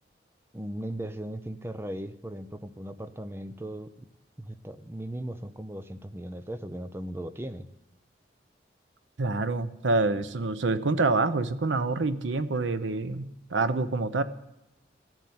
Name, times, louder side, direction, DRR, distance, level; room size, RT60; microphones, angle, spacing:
voice 1, 0.5-3.9 4.4-7.7, right 1 dB, 15° right, 10 dB, 0.6 m, -37 dB
voice 2, 9.2-14.2, right 3 dB, 90° right, 12 dB, 0.8 m, -27 dB
13.5 x 7.4 x 9.5 m, 0.90 s
head